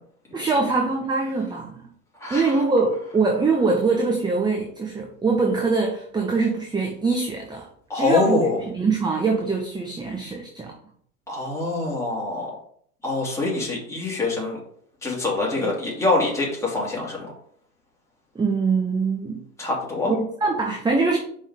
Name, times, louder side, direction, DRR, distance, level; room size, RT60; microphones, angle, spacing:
voice 1, 0.3-1.8 2.3-7.7 7.9-8.5 8.7-10.7 15.6-15.7 18.3-19.4 20.1-21.2, right 4 dB, 10° right, 1 dB, 0.9 m, -23 dB
voice 2, 2.2-2.5 7.9-8.6 11.3-12.5 13.0-14.6 15.0-17.3 19.6-20.1, left 3 dB, 5° left, -4 dB, 3.0 m, -25 dB
5.4 x 5.4 x 5.2 m, 0.63 s
figure-of-eight pair, 90°, 45 cm